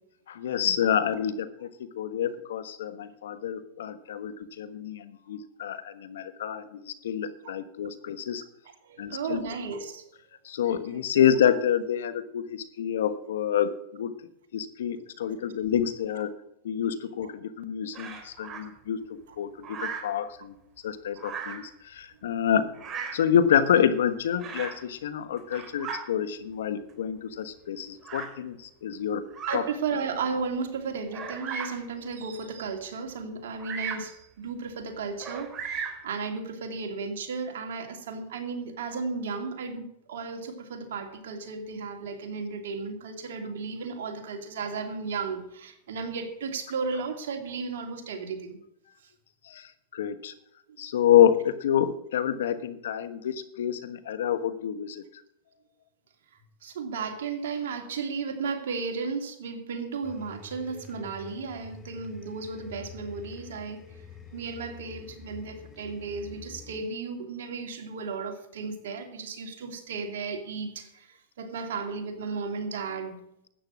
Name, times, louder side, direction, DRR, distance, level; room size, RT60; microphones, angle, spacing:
voice 1, 0.3-8.4 9.0-9.4 10.4-14.1 14.5-16.3 16.6-20.5 20.8-22.6 23.1-29.2 29.5-29.6 49.4-50.3 50.8-55.0, left 9 dB, 80° left, 13 dB, 1.3 m, -27 dB
voice 2, 8.8-10.1 10.7-10.8 15.0-15.1 29.5-48.6 49.0-49.1 56.6-63.8 64.3-73.2, right 5 dB, 75° right, 5 dB, 2.6 m, -34 dB
Bird vocalization bird call bird song, 17.9-18.6 19.6-20.2 21.2-21.7 22.7-23.3 24.4-24.8 25.4-26.0 26.9-27.0 28.0-28.3 29.3-29.6 30.3-30.4 31.1-31.8 33.6-34.1 35.2-36.1, right 6 dB, 30° right, 2.9 m, -36 dB
sound 1, 60.0-66.8, left 5 dB, 15° left, 2.9 m, -47 dB
13.0 x 9.0 x 6.2 m, 0.79 s
hypercardioid pair, 115°, 0 cm